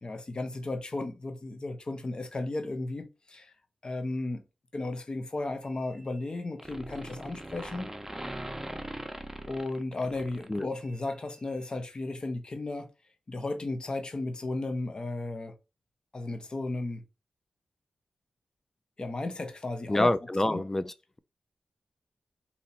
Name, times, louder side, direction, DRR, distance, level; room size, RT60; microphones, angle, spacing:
voice 1, 0.0-3.5 3.8-4.4 4.7-7.9 9.5-12.9 13.3-15.5 16.1-17.0 19.0-20.1 20.5-20.6, left 2 dB, 45° left, 0.9 m, -34 dB
sound 1, 5.7-6.3 6.6-11.0, right 1 dB, 15° right, 0.8 m, -41 dB
voice 2, 19.9-21.2, left 1 dB, 20° left, 0.4 m, -27 dB
2.9 x 2.9 x 4.1 m
cardioid pair, 55°, 2 cm